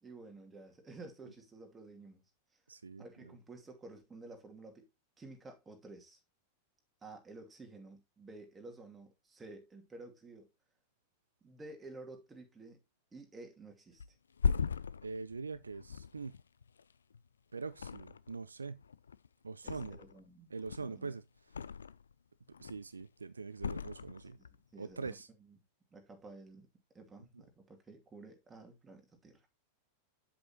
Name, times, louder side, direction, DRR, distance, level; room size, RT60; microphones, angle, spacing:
voice 1, 0.0-2.2 3.0-4.9 5.2-6.2 7.0-10.5 11.4-12.8 13.1-14.0 19.6-20.5 20.8-21.1 24.4-25.1 25.4-25.6 25.9-26.7 26.9-29.5, right 2 dB, 15° right, 2.5 m, -52 dB
voice 2, 2.7-3.4 15.0-16.3 17.5-18.8 19.4-20.0 20.5-21.2 22.6-24.4 24.8-25.3, right 4 dB, 75° right, 0.4 m, -43 dB
Thump thud, 14.0-17.3 17.7-18.5 18.8-20.3 20.6-22.1 22.5-23.0 23.6-24.6 24.9-25.1, left 6 dB, 70° left, 0.4 m, -38 dB
8.3 x 7.8 x 2.9 m
figure-of-eight pair, 90°, 0 cm